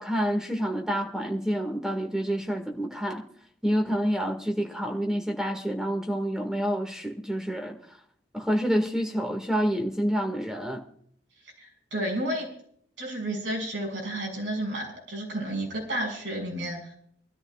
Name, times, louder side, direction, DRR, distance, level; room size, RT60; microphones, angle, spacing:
voice 1, 0.0-3.2 3.6-7.8 8.3-10.8, equal, 5° right, 2 dB, 1.9 m, -28 dB
voice 2, 11.6-12.5 13.0-16.9, right 1 dB, 85° right, -1 dB, 6.5 m, -31 dB
25.0 x 13.0 x 2.4 m, 0.62 s
head